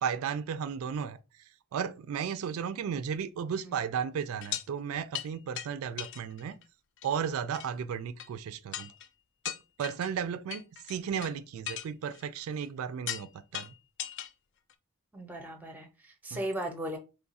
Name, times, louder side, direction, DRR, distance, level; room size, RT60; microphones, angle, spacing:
voice 1, 0.0-6.6 7.0-8.9 9.5-13.7 16.3-16.4, right 7 dB, 75° right, 0.3 m, -34 dB
sound 1, 4.4-4.7 5.1-5.3 5.6-5.7 6.0-6.6 7.0-7.1 7.5-7.7 8.2-8.3 8.7-9.1 9.4-10.1 10.5-11.3 11.6-12.7 13.1-13.3 13.5-14.3 14.7-14.8, left 10 dB, 55° left, 0.3 m, -38 dB
voice 2, 15.1-17.0, right 1 dB, 10° right, 0.5 m, -37 dB
3.1 x 2.3 x 4.0 m
head